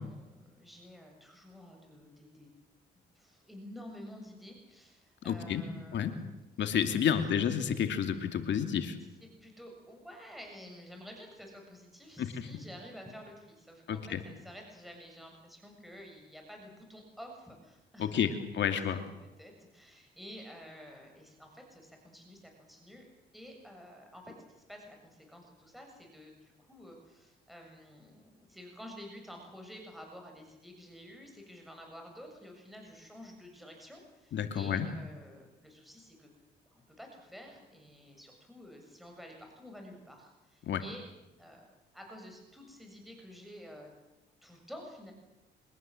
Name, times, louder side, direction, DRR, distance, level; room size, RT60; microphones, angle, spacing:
voice 1, 0.0-2.5 3.1-7.0 9.2-23.1 23.3-36.3 36.7-41.0 41.4-41.6 41.9-43.9 44.4-45.1, equal, ahead, 2 dB, 7.4 m, -50 dB
voice 2, 5.3-5.6 5.9-6.1 6.6-9.0 12.2-12.3 13.9-14.2 18.0-19.0 34.3-34.9 40.7-40.8, left 8 dB, 65° left, 7 dB, 2.6 m, -30 dB
24.0 x 21.0 x 7.9 m, 0.95 s
cardioid pair, 90°, 20 cm